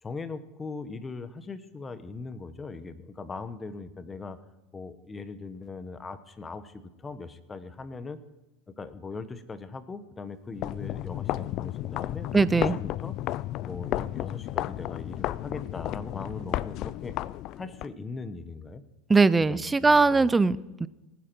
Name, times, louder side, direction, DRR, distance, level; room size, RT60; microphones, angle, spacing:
voice 1, 0.0-4.4 4.7-8.2 8.7-13.2 13.6-17.1 17.6-18.8 19.5-20.3, left 4 dB, 15° left, 13 dB, 1.0 m, -40 dB
sound 1, 10.5-17.9, left 15 dB, 50° left, 0.3 m, -33 dB
voice 2, 12.3-12.8 19.1-20.9, right 3 dB, 10° right, 18 dB, 0.4 m, -21 dB
18.5 x 10.0 x 4.5 m, 1.0 s
supercardioid pair, 130°, 0 cm